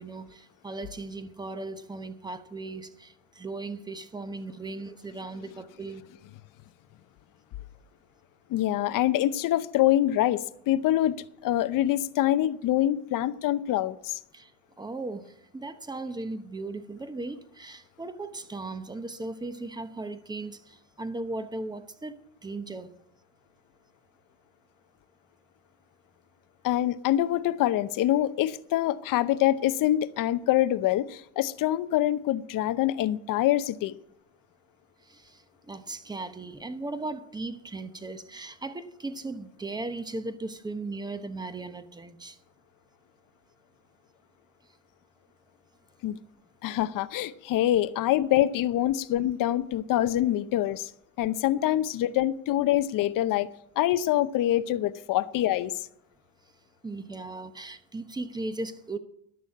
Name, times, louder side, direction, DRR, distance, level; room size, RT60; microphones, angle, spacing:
voice 1, 0.0-6.0 14.3-14.5 14.8-22.2 22.4-22.9 35.1-35.2 35.7-42.4 56.8-59.0, right 2 dB, 10° right, 0.9 m, -37 dB
voice 2, 8.5-11.2 11.4-14.2 26.6-34.0 46.0-46.2 46.6-50.9 51.2-53.5 53.8-55.7, left 13 dB, 50° left, 0.7 m, -25 dB
12.5 x 6.3 x 8.4 m
supercardioid pair, 110°, 41 cm